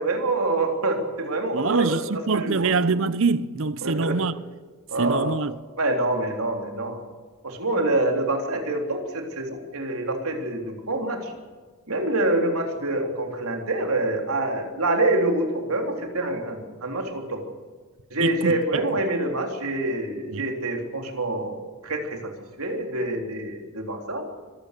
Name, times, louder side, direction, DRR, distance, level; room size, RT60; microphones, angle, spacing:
voice 1, 0.0-2.0 2.3-2.7 3.8-4.2 4.9-5.3 5.8-7.0 7.4-11.3 11.9-17.4 18.1-22.3 22.6-24.3, right 2 dB, 80° right, 3.5 m, -26 dB
voice 2, 1.5-4.3 5.0-5.5 18.2-18.8 20.3-20.4, right 4 dB, 60° right, 0.6 m, -24 dB
25.0 x 15.5 x 6.8 m
head